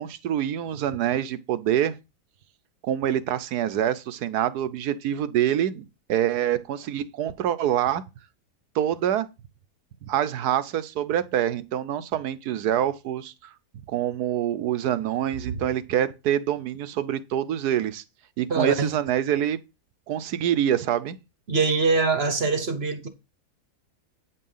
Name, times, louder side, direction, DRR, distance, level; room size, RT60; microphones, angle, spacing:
voice 1, 0.0-1.9 2.8-8.0 8.7-9.3 10.1-13.3 13.9-18.0 18.4-19.6 20.1-21.2, right 11 dB, 75° right, 1.3 m, -26 dB
voice 2, 18.5-19.0 21.5-23.1, right 4 dB, 45° right, 1.1 m, -23 dB
9.2 x 5.6 x 5.5 m
omnidirectional pair, 1.8 m